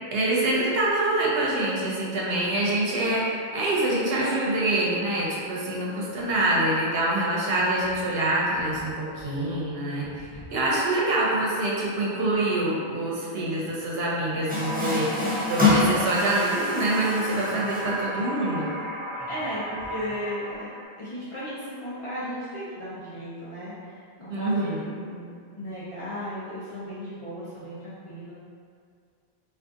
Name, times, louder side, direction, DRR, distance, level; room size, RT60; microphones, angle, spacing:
voice 1, 0.1-15.1 15.5-18.7 24.3-24.9, right 1 dB, 65° right, -4 dB, 0.8 m, -25 dB
Water tap faucet, 14.5-20.8, left 2 dB, 10° right, 0.5 m, -28 dB
voice 2, 19.3-20.7 21.0-28.3, equal, 35° left, -11 dB, 0.6 m, -36 dB
2.6 x 2.4 x 3.5 m, 2.2 s
omnidirectional pair, 1.1 m